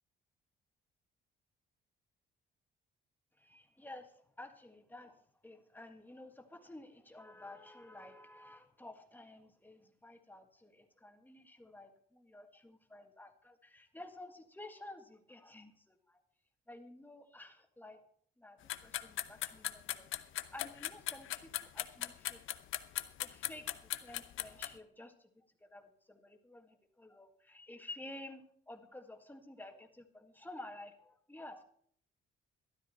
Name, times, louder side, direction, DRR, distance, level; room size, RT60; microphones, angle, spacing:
voice 1, 3.4-16.2 16.7-18.0 18.4-20.1 20.5-22.4 22.9-31.6, left 2 dB, 10° left, 5 dB, 1.8 m, -52 dB
sound 1, 18.7-24.7, left 13 dB, 80° left, 0.8 m, -37 dB
13.0 x 12.0 x 4.3 m, 0.62 s
cardioid pair, 90°, 20 cm